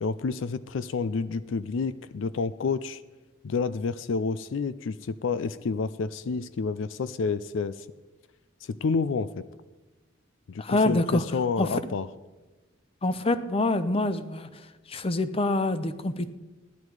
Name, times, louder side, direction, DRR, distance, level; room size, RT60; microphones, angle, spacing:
voice 1, 0.0-3.0 3.4-7.9 8.6-9.4 10.5-12.1, left 4 dB, 75° left, 15 dB, 0.4 m, -29 dB
voice 2, 10.6-11.2 11.6-11.7 13.0-14.5 14.9-16.3, left 2 dB, 30° left, 12 dB, 0.6 m, -25 dB
15.0 x 10.5 x 4.8 m, 1.2 s
head